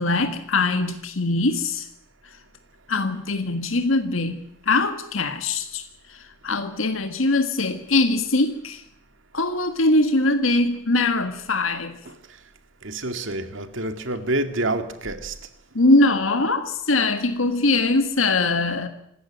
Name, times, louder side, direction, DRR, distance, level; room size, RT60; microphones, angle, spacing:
voice 1, 0.0-1.9 2.9-8.8 9.3-12.0 15.7-18.9, left 2 dB, 75° left, 1.7 m, -22 dB
voice 2, 12.8-15.3, right 2 dB, 65° right, 2.1 m, -27 dB
26.5 x 13.5 x 9.2 m
head